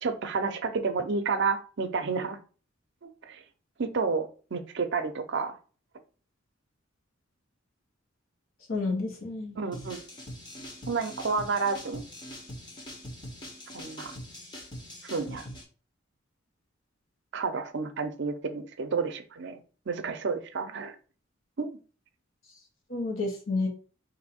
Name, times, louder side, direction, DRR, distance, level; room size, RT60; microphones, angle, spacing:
voice 1, 0.0-2.4 3.0-3.4 3.8-5.6 9.5-10.0 10.9-12.0 13.7-14.2 15.0-15.5 17.3-19.6 19.9-21.0 21.6-21.8, right 4 dB, 60° right, 9 dB, 0.6 m, -30 dB
voice 2, 8.7-9.6 22.9-23.7, left 3 dB, 80° left, 1 dB, 1.2 m, -30 dB
sound 1, 9.7-15.6, equal, 20° left, 0.9 m, -43 dB
3.9 x 2.6 x 4.3 m, 0.38 s
head